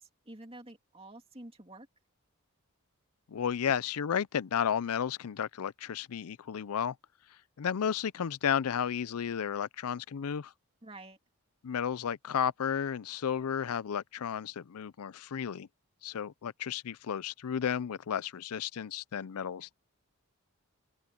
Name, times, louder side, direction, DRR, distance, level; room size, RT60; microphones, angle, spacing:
voice 1, 0.0-1.9 10.8-11.2, right 2 dB, 25° right, 2.6 m, -49 dB
voice 2, 3.3-6.9 7.6-10.5 11.6-15.7 16.0-19.7, left 8 dB, 85° left, 0.5 m, -33 dB
open air
head